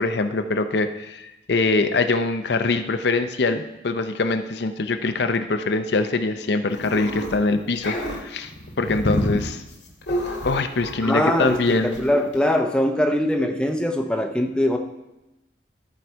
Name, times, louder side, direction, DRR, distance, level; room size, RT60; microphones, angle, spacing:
voice 1, 0.0-8.5 8.8-9.6 10.4-12.0, left 3 dB, 65° left, 8 dB, 0.6 m, -23 dB
sound 1, 6.7-7.4 7.7-11.1 11.3-11.6 11.9-12.1 12.3-12.4, equal, 85° left, 1.7 m, -28 dB
voice 2, 11.0-14.8, left 1 dB, 5° left, 4 dB, 0.6 m, -22 dB
13.5 x 4.7 x 4.5 m, 0.96 s
head